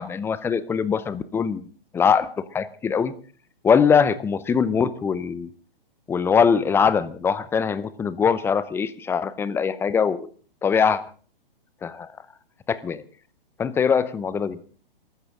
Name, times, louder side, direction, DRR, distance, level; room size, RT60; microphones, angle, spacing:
voice 1, 0.0-1.6 1.9-3.1 3.6-5.5 6.1-10.3 10.6-11.0 11.8-12.1 12.7-13.0 13.6-14.6, left 6 dB, 10° left, 15 dB, 0.7 m, -22 dB
26.5 x 14.0 x 3.7 m, 0.39 s
figure-of-eight pair, 125°, 29 cm